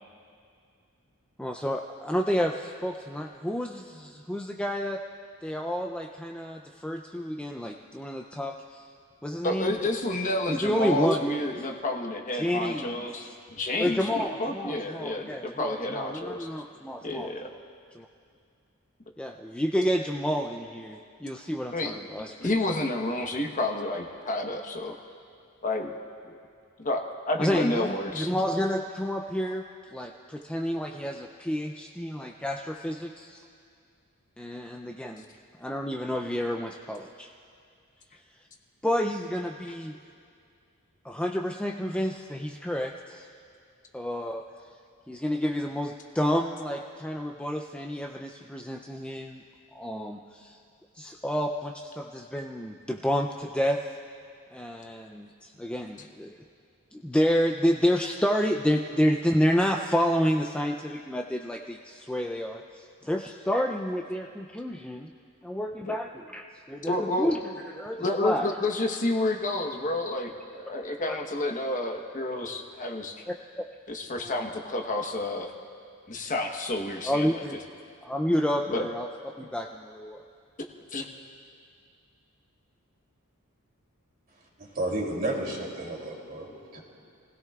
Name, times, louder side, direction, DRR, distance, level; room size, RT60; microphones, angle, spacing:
voice 1, 1.4-5.0 5.4-8.9 9.2-9.7 10.5-11.6 12.3-13.3 13.8-17.3 17.9-18.1 19.2-22.8 27.4-33.4 34.4-35.3 35.6-37.3 38.8-39.9 41.0-43.3 43.9-44.4 45.1-49.4 49.7-50.6 50.9-53.9 54.5-56.3 56.9-65.1 65.4-67.4 67.7-68.5 71.1-71.2 73.3-73.6 74.1-74.3 77.0-77.6 78.0-79.1 79.4-80.2, equal, 5° left, 1 dB, 0.4 m, -29 dB
voice 2, 9.4-16.5 17.0-17.5 21.7-21.9 22.4-24.9 25.6-25.9 26.2-26.3 26.8-28.3 65.9-66.0 66.9-67.4 68.0-73.2 73.9-75.5 76.1-77.4 78.7-78.9 80.9-81.1, left 2 dB, 35° left, 3 dB, 1.1 m, -30 dB
voice 3, 84.6-86.8, right 1 dB, 45° right, -2 dB, 3.0 m, -32 dB
29.5 x 17.0 x 2.4 m, 2.3 s
head